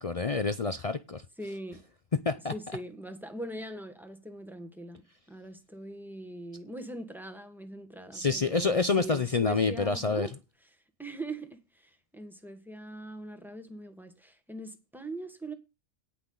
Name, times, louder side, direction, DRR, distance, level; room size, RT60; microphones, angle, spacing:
voice 1, 0.0-1.2 2.3-2.5 8.1-10.3, left 4 dB, 60° left, 0.3 m, -27 dB
voice 2, 1.4-1.8 2.5-5.0 5.3-10.4 11.0-15.5, right 1 dB, ahead, 1.3 m, -41 dB
17.0 x 6.0 x 3.9 m
omnidirectional pair, 1.5 m